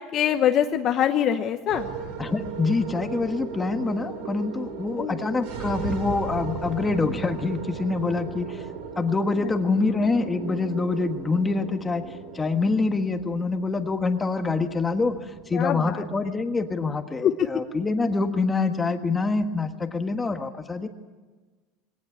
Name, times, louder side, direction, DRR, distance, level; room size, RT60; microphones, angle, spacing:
voice 1, 0.1-1.9 5.0-5.2 9.4-9.5 15.5-16.0 17.2-17.5, left 10 dB, 40° left, 7 dB, 0.9 m, -23 dB
sound 1, 1.7-20.1, right 6 dB, 75° right, 3.6 m, -37 dB
voice 2, 2.2-8.6 9.0-12.1 12.3-20.9, left 3 dB, 15° left, 7 dB, 1.5 m, -25 dB
21.0 x 18.0 x 9.8 m, 1.4 s
supercardioid pair, 140°, 0 cm